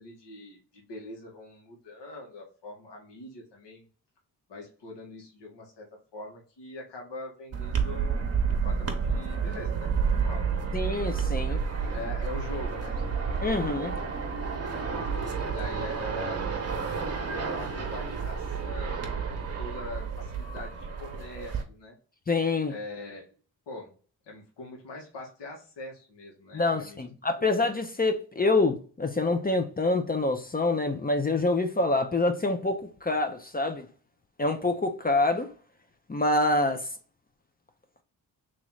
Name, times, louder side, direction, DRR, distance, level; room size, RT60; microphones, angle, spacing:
voice 1, 0.0-3.8 4.5-10.5 11.3-13.0 15.4-16.4 17.2-22.0 22.7-23.2 23.7-23.9 24.2-27.0 27.4-27.5, left 2 dB, 70° left, 1.6 m, -43 dB
sound 1, 7.5-21.6, right 5 dB, 35° right, 1.0 m, -30 dB
voice 2, 10.7-11.6 13.4-14.0 22.3-22.7 26.5-33.9 34.4-35.5 36.1-36.9, left 2 dB, 20° left, 0.6 m, -26 dB
3.1 x 3.0 x 3.8 m
supercardioid pair, 55°, 44 cm